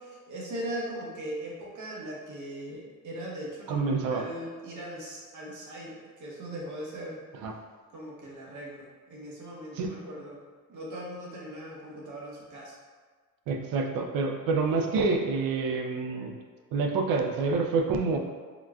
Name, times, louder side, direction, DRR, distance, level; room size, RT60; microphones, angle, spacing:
voice 1, 0.0-7.2 7.9-10.4 10.7-12.8, right 1 dB, 60° right, -4 dB, 0.8 m, -39 dB
voice 2, 3.7-4.2 7.3-7.5 9.8-9.9 13.5-16.4 16.7-18.2, right 4 dB, 85° right, 3 dB, 0.5 m, -27 dB
3.8 x 2.3 x 2.2 m, 1.5 s
cardioid pair, 135°, 34 cm